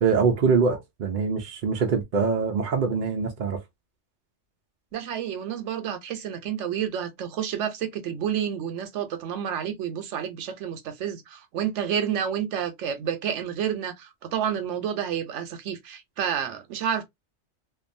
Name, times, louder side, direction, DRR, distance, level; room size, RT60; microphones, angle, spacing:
voice 1, 0.0-3.6, right 5 dB, 55° right, 0.6 m, -24 dB
voice 2, 4.9-17.0, right 9 dB, 90° right, 1.0 m, -30 dB
2.6 x 2.2 x 2.5 m
omnidirectional pair, 1.2 m